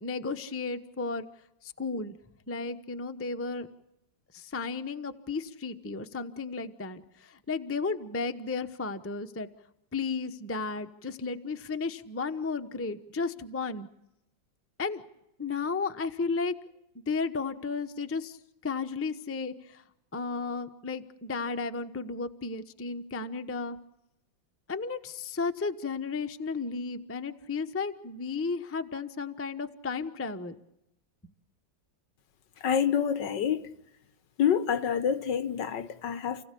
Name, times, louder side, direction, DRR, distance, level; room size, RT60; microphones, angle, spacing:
voice 1, 0.0-1.2 1.6-2.2 2.5-3.7 4.3-9.5 9.9-13.9 14.8-15.0 15.4-16.5 17.1-18.4 18.6-19.8 20.1-23.8 24.7-30.5, left 4 dB, 10° left, 0.6 m, -33 dB
voice 2, 32.6-33.6 34.4-36.4, left 8 dB, 70° left, 1.7 m, -27 dB
29.5 x 16.5 x 8.4 m
omnidirectional pair, 2.1 m